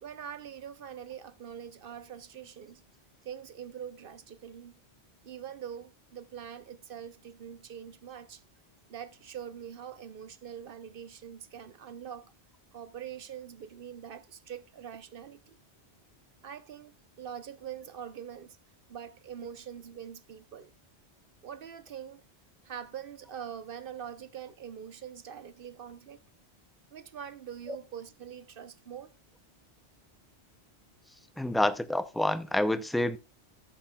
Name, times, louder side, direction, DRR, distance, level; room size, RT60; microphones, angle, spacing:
voice 1, 0.0-2.8 3.2-4.8 5.2-8.4 8.9-12.3 12.7-15.6 16.4-18.6 18.9-20.7 21.4-22.2 22.6-26.2 26.9-29.1, right 8 dB, 60° right, 1.0 m, -44 dB
voice 2, 31.4-33.2, left 1 dB, ahead, 0.3 m, -28 dB
15.0 x 7.9 x 2.4 m
omnidirectional pair, 1.1 m